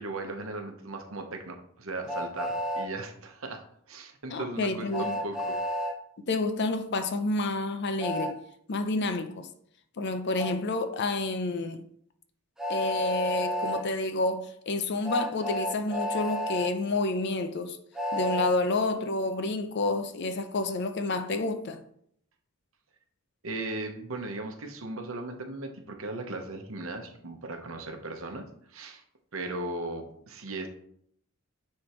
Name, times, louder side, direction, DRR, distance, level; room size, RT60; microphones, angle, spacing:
voice 1, 0.0-3.6 3.9-5.6 23.4-28.4 28.7-29.0 29.3-30.7, right 2 dB, 70° right, 0.9 m, -37 dB
Train, 2.1-2.9 4.9-5.9 8.0-8.3 10.4-10.5 12.6-13.8 15.0-16.7 17.9-18.5, left 1 dB, 5° right, 0.7 m, -31 dB
voice 2, 4.3-5.1 6.3-8.4 8.7-9.5 10.0-11.8 12.7-17.8 18.1-21.8, left 2 dB, 50° left, 0.5 m, -29 dB
9.7 x 3.4 x 3.0 m
head